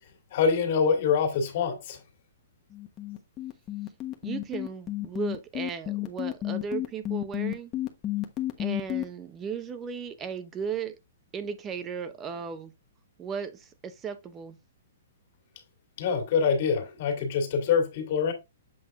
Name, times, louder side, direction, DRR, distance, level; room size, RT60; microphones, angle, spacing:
voice 1, 0.3-2.0 16.0-18.3, left 6 dB, 55° left, 2.3 m, -25 dB
sound 1, 2.7-9.0, left 15 dB, 25° left, 1.2 m, -31 dB
voice 2, 4.2-7.7 8.6-11.0 11.3-12.7 13.2-14.6, right 6 dB, 20° right, 1.0 m, -36 dB
7.9 x 3.6 x 3.6 m
hypercardioid pair, 145°, 0 cm